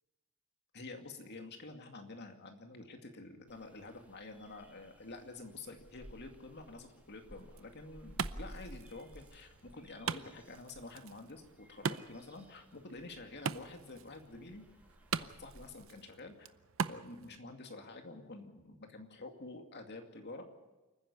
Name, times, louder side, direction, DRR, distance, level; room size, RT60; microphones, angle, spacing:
voice 1, 0.7-14.6 15.1-16.5 16.9-20.4, left 2 dB, 55° left, 5 dB, 2.3 m, -49 dB
sound 1, 3.5-15.7, equal, 5° right, 2.2 m, -55 dB
Wood, 7.4-17.4, right 6 dB, 70° right, 0.7 m, -43 dB
28.0 x 10.0 x 9.9 m, 1.1 s
head